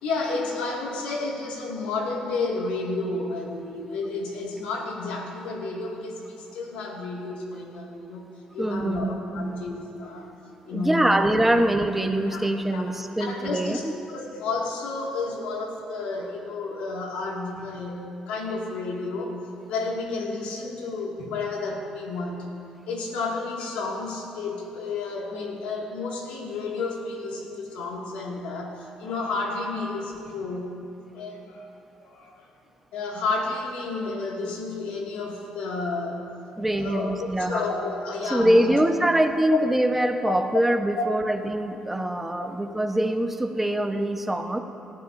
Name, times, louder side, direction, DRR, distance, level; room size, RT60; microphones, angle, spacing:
voice 1, 0.0-8.3 8.5-10.3 10.7-11.6 12.3-12.8 13.2-19.4 19.7-22.5 22.9-30.8 31.1-31.7 32.0-32.4 32.9-36.3 36.8-39.1 39.5-39.6 40.2-40.4 41.0-41.1 42.4-42.5, left 3 dB, 90° left, -1 dB, 2.2 m, -31 dB
voice 2, 8.6-9.6 10.7-13.9 36.6-37.7 38.2-44.6, right 1 dB, 10° right, 4 dB, 1.1 m, -24 dB
19.5 x 14.5 x 2.7 m, 2.8 s
cardioid pair, 85°, 2 cm